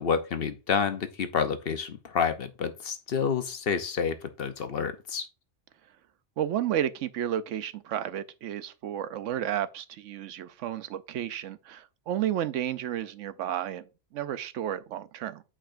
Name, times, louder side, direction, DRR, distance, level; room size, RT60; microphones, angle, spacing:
voice 1, 0.0-5.3, left 6 dB, 55° left, 0.9 m, -29 dB
voice 2, 6.4-13.9 14.1-15.4, right 11 dB, 85° right, 1.0 m, -32 dB
8.8 x 5.0 x 2.5 m
omnidirectional pair, 1.2 m